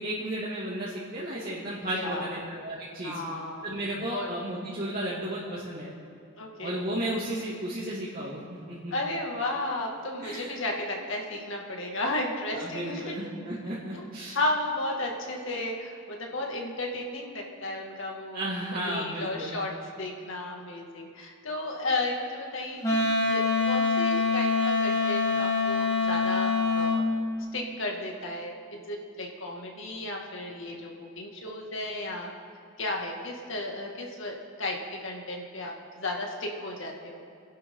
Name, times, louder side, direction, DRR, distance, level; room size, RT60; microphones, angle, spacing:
voice 1, 0.0-3.2 3.6-5.9 6.6-8.4 8.7-8.9 10.2-10.5 12.5-14.4 18.3-19.6, right 1 dB, 45° right, -8 dB, 2.5 m, -33 dB
voice 2, 1.9-2.4 3.0-3.6 4.1-4.3 6.4-6.8 8.9-13.2 13.9-14.1 14.3-18.5 18.7-19.7 20.0-27.1 27.5-30.9 31.2-32.3 32.8-37.2, left 2 dB, 65° left, 0 dB, 2.3 m, -33 dB
Wind instrument woodwind instrument, 22.8-27.0, left 4 dB, 15° left, 3.1 m, -25 dB
29.5 x 11.5 x 3.9 m, 2.5 s
head